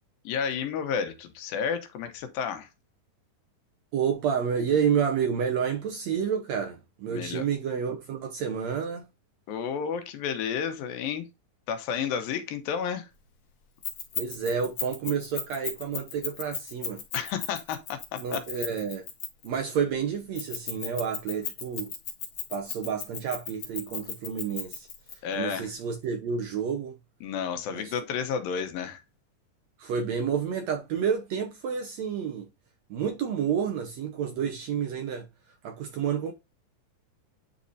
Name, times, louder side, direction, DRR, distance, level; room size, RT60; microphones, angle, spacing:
voice 1, 0.2-2.7 7.1-7.4 9.5-11.3 11.7-13.1 17.1-18.4 25.2-25.7 27.2-29.0, left 7 dB, 90° left, 2.9 m, -31 dB
voice 2, 3.9-9.1 14.2-17.0 18.2-19.0 19.4-21.9 22.5-24.9 25.3-26.9 27.7-27.9 29.8-32.5 32.9-35.3 35.6-36.3, right 7 dB, 65° right, 1.8 m, -29 dB
Keys jangling, 13.8-19.5 20.4-25.1, left 7 dB, 60° left, 2.9 m, -35 dB
9.8 x 4.2 x 2.7 m
omnidirectional pair, 4.0 m